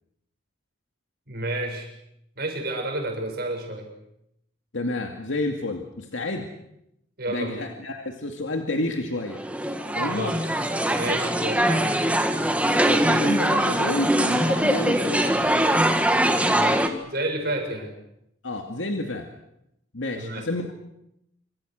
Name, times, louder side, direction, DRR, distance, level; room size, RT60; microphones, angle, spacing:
voice 1, 1.3-1.9 2.4-3.9 7.2-7.6 10.0-10.3 10.9-11.7 16.5-17.9 20.1-20.4, right 1 dB, 50° right, 2 dB, 7.3 m, -30 dB
voice 2, 4.7-6.5 7.3-9.4 9.9-10.4 11.7-11.8 12.8-15.5 18.4-19.3 19.9-20.7, left 2 dB, 75° left, 4 dB, 2.4 m, -30 dB
sound 1, 9.3-16.9, right 1 dB, 5° right, 1.8 m, -22 dB
27.0 x 26.0 x 6.6 m, 0.81 s
head